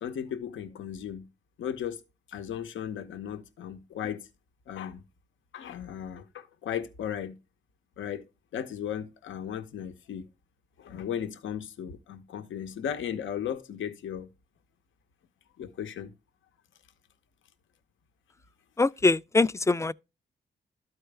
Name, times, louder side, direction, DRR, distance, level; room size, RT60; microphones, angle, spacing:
voice 1, 0.0-1.3 1.6-2.0 2.3-4.3 4.7-5.0 5.5-7.4 8.0-8.2 8.5-10.3 10.8-14.3 15.6-16.1, left 9 dB, 85° left, 0.8 m, -36 dB
voice 2, 18.8-19.9, left 3 dB, 15° left, 0.3 m, -23 dB
12.5 x 4.4 x 3.3 m
cardioid pair, 50°, 20 cm